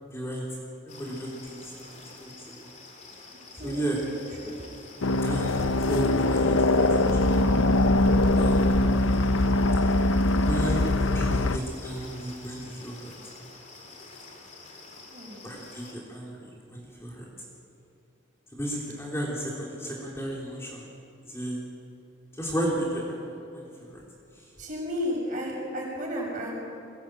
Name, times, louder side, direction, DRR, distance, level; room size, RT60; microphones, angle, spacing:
voice 1, 0.0-2.7 3.6-4.0 5.2-7.4 8.4-8.8 10.4-13.1 15.4-17.3 18.5-20.9 21.3-21.6 22.3-24.0 24.4-24.5, right 1 dB, 15° left, -4 dB, 3.3 m, -34 dB
sound 1, 0.9-15.9, left 3 dB, 35° left, 3.3 m, -48 dB
voice 2, 3.6-4.1 4.4-4.6 15.1-15.4 24.6-26.5, equal, 40° right, -2 dB, 7.0 m, -33 dB
sound 2, 5.0-11.6, left 2 dB, 85° left, 0.8 m, -22 dB
22.5 x 18.5 x 9.1 m, 2.6 s
head